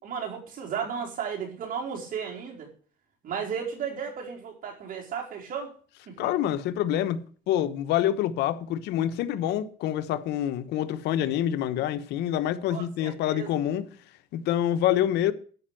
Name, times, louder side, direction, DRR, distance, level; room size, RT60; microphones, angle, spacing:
voice 1, 0.0-2.7 3.2-5.7 6.1-6.3 12.7-13.5, right 7 dB, 55° right, 4.4 m, -34 dB
voice 2, 6.2-7.2 7.5-13.9 14.3-15.3, left 11 dB, 85° left, 1.1 m, -26 dB
12.5 x 5.4 x 8.9 m
cardioid pair, 110°, 17 cm